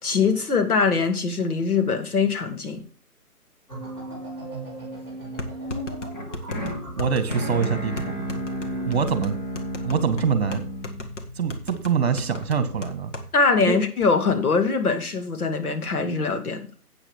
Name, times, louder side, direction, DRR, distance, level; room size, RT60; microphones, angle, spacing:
voice 1, 0.0-2.8 13.3-16.6, left 4 dB, 70° left, 2.3 m, -22 dB
sound 1, 3.7-8.9, right 1 dB, 15° left, 4.1 m, -37 dB
sound 2, 4.5-4.6 5.4-13.3 13.6-13.7 14.0-14.4, left 2 dB, 50° left, 1.8 m, -36 dB
sound 3, 6.1-12.2, equal, 30° left, 1.7 m, -33 dB
voice 2, 7.0-8.3 8.9-9.3 9.8-10.6 11.3-13.1 13.7-13.8, right 6 dB, 40° right, 1.7 m, -24 dB
11.5 x 8.7 x 3.5 m
hypercardioid pair, 165°, 47 cm